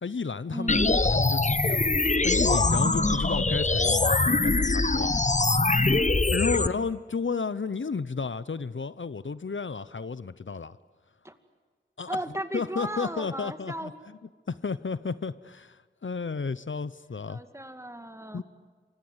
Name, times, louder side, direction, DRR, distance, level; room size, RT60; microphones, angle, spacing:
voice 1, 0.0-5.1 6.3-10.8 12.0-12.2 12.5-14.2 14.5-17.4 18.3-18.4, left 5 dB, 75° left, 16 dB, 0.7 m, -32 dB
voice 2, 0.5-1.0 2.8-3.3 6.5-6.9 11.2-11.4 12.1-13.9 17.3-18.4, right 1 dB, 15° right, 8 dB, 2.3 m, -36 dB
sound 1, 0.7-6.7, left 3 dB, 35° left, 0.9 m, -23 dB
sound 2, 2.0-5.6 5.9-6.0, left 3 dB, 55° left, 2.4 m, -48 dB
28.0 x 25.0 x 8.0 m, 1.5 s
wide cardioid pair, 50°, 20 cm